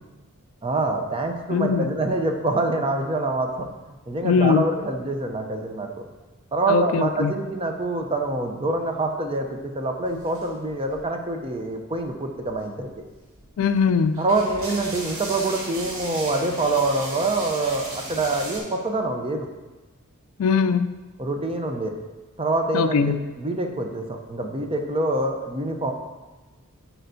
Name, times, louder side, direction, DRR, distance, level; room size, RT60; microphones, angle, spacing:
voice 1, 0.6-3.7 4.1-5.9 6.5-12.9 14.2-19.5 21.2-21.9 22.4-25.9, right 2 dB, 25° right, 4 dB, 0.6 m, -25 dB
voice 2, 1.5-1.9 4.2-4.7 6.7-7.3 13.6-14.2 20.4-20.9 22.7-23.2, left 6 dB, 65° left, 11 dB, 0.3 m, -21 dB
sound 1, 10.0-11.4 12.0-12.1 12.3-18.6, right 1 dB, 75° right, 2.3 m, -36 dB
10.5 x 4.5 x 2.7 m, 1.2 s
head